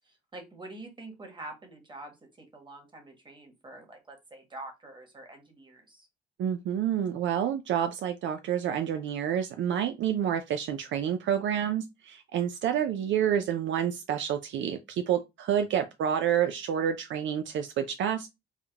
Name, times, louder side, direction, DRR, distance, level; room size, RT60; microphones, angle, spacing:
voice 1, 0.1-6.1, right 2 dB, 25° right, 1.4 m, -46 dB
voice 2, 6.4-18.3, right 9 dB, 70° right, 0.4 m, -28 dB
3.5 x 2.1 x 3.4 m
cardioid pair, 90°, 20 cm